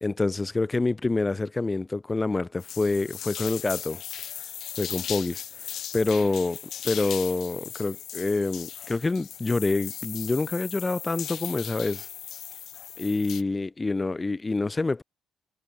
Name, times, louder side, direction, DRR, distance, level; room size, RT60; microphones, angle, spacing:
voice 1, 0.0-4.0 4.8-5.4 5.9-12.1 13.0-15.0, left 3 dB, 20° left, 0.9 m, -27 dB
sound 1, 2.6-13.4, left 10 dB, 60° left, 4.5 m, -38 dB
cardioid pair, 100°, 0 cm